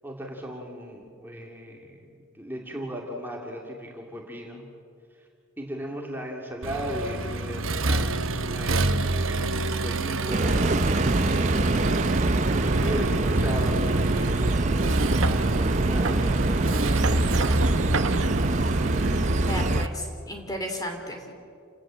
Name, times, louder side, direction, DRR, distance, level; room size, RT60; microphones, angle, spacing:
voice 1, 0.0-2.1 2.3-4.6 5.2-5.3 5.6-11.3 11.7-15.0 15.8-17.1, equal, 10° right, -1 dB, 2.6 m, -37 dB
Accelerating revving vroom, 6.6-19.9, right 2 dB, 80° right, 1.2 m, -27 dB
sound 1, 10.3-19.9, right 2 dB, 35° right, 0.6 m, -25 dB
voice 2, 18.8-21.3, equal, 20° left, 3 dB, 2.9 m, -35 dB
29.0 x 18.0 x 7.7 m, 2.3 s
head